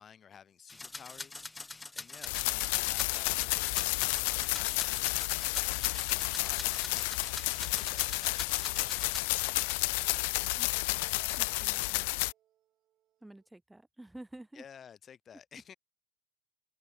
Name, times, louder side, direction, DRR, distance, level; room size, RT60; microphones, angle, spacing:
voice 1, 0.0-5.4 5.6-7.3 7.7-9.1 14.5-15.7, left 8 dB, 30° left, 5.2 m, -55 dB
sound 1, 0.7-9.2, left 3 dB, 15° left, 0.8 m, -44 dB
sound 2, 2.2-12.3, left 27 dB, 65° left, 0.3 m, -31 dB
sound 3, 5.5-13.5, right 12 dB, 45° right, 8.0 m, -68 dB
voice 2, 10.5-11.0 11.4-12.0 13.2-14.6, right 1 dB, 5° right, 2.6 m, -51 dB
hypercardioid pair, 85°, 0 cm